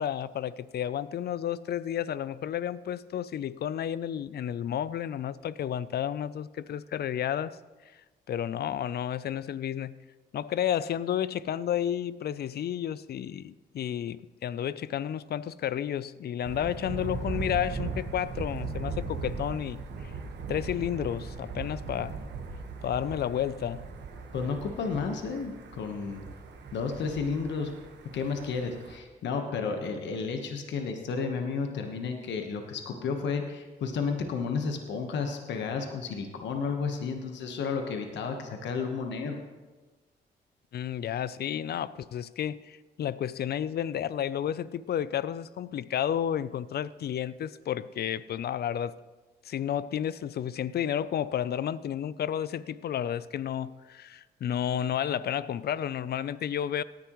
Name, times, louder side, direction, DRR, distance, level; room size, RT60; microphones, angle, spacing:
voice 1, 0.0-7.6 8.3-9.9 10.3-20.1 20.5-22.2 22.8-23.8 40.7-48.9 49.4-56.8, left 10 dB, 60° left, 18 dB, 0.5 m, -31 dB
Thunder, 16.4-29.0, right 4 dB, 75° right, 1.4 m, -39 dB
voice 2, 24.3-26.2 26.7-27.7 28.1-39.4, left 5 dB, 80° left, 4 dB, 1.2 m, -32 dB
17.5 x 10.5 x 3.1 m, 1.3 s
supercardioid pair, 60°, 18 cm